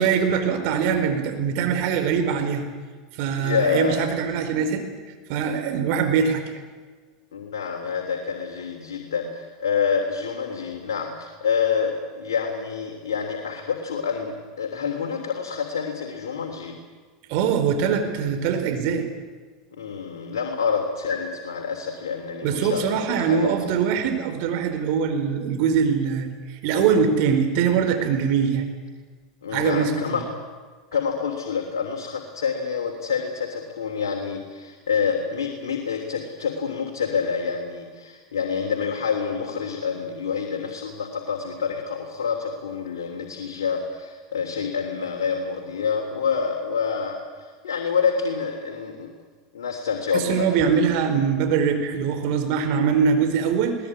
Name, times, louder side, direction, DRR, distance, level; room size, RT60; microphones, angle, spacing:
voice 1, 0.0-2.7 3.1-4.8 5.3-6.4 17.3-19.1 22.4-28.7 29.5-29.9 50.1-53.8, right 6 dB, 60° right, 7 dB, 4.7 m, -22 dB
voice 2, 3.4-4.1 7.3-16.8 19.7-23.5 29.4-30.2 30.9-49.1 49.5-50.8, left 6 dB, 85° left, 2 dB, 3.2 m, -27 dB
22.0 x 19.5 x 9.7 m, 1.5 s
hypercardioid pair, 95°, 2 cm